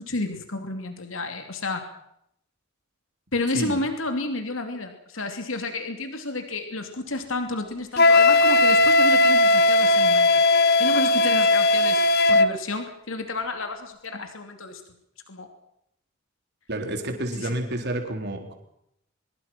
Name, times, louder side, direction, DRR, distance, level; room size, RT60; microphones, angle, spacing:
voice 1, 0.0-1.9 3.3-10.4 10.8-12.0 12.3-14.8 15.3-15.5 17.4-17.6, left 2 dB, 80° left, 6 dB, 3.0 m, -31 dB
Wind instrument woodwind instrument, 8.0-12.5, left 2 dB, 55° left, 1.2 m, -18 dB
voice 2, 16.7-18.6, right 1 dB, 55° right, 3 dB, 4.2 m, -29 dB
24.5 x 22.5 x 6.1 m, 0.76 s
head